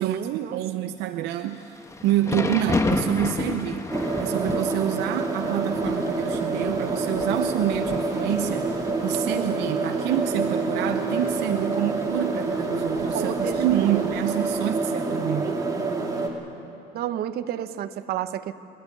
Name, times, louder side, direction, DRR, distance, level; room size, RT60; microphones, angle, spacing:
voice 1, 0.0-0.9 13.1-14.0 15.4-16.0 16.9-18.5, right 10 dB, 70° right, 10 dB, 1.0 m, -31 dB
voice 2, 0.5-3.9 4.2-15.5, right 12 dB, 90° right, 8 dB, 0.7 m, -27 dB
Thunder / Rain, 1.5-14.6, left 2 dB, 15° left, 1.4 m, -33 dB
sound 1, 3.9-16.3, right 3 dB, 20° right, 2.6 m, -27 dB
25.5 x 12.5 x 9.3 m, 2.7 s
cardioid pair, 110°, 17 cm